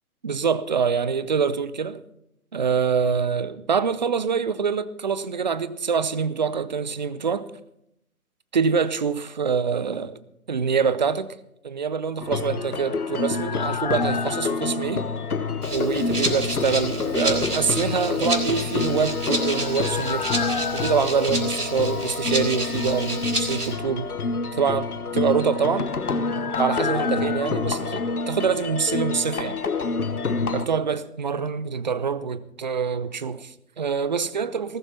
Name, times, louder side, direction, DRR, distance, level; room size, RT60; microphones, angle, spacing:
voice 1, 0.2-2.0 2.5-7.5 8.5-10.2 10.5-11.3 11.6-15.0 15.7-20.3 20.7-24.1 24.6-25.9 26.6-29.6 30.5-34.8, right 6 dB, 30° right, 0.6 m, -25 dB
gamelan melody, 12.2-30.7, left 4 dB, 70° left, 1.2 m, -27 dB
sound 1, 12.3-16.1 16.4-16.5 18.9-22.6 22.9-23.0 25.2-29.1 29.3-29.4, left 6 dB, 30° left, 0.7 m, -34 dB
Rattle (instrument), 15.6-23.7, right 1 dB, 80° right, 3.8 m, -30 dB
20.0 x 12.0 x 4.3 m
figure-of-eight pair, 135°, 45 cm